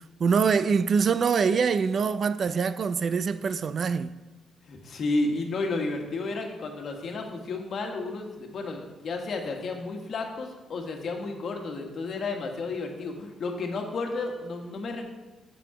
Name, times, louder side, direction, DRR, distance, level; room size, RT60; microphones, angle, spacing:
voice 1, 0.2-4.1, right 5 dB, 50° right, 0.4 m, -24 dB
voice 2, 4.7-15.1, left 3 dB, 55° left, 1.4 m, -32 dB
7.1 x 5.9 x 4.9 m
cardioid pair, 90°, 0 cm